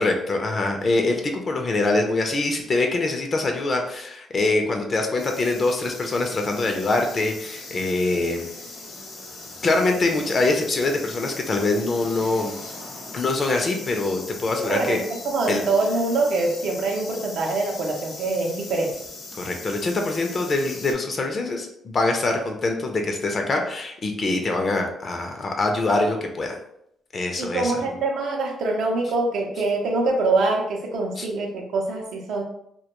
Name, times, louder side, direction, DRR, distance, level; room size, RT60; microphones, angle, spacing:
voice 1, 0.0-8.5 9.6-12.5 13.1-15.0 15.5-15.6 19.4-26.5 27.1-27.8 31.2-31.3, left 2 dB, 40° left, 3 dB, 0.4 m, -24 dB
sound 1, 5.2-20.9, left 2 dB, 65° left, 0.8 m, -39 dB
voice 2, 14.6-15.0 15.2-19.0 27.4-32.4, right 3 dB, 75° right, 1 dB, 0.4 m, -24 dB
2.2 x 2.1 x 2.9 m, 0.75 s
cardioid pair, 90°, 0 cm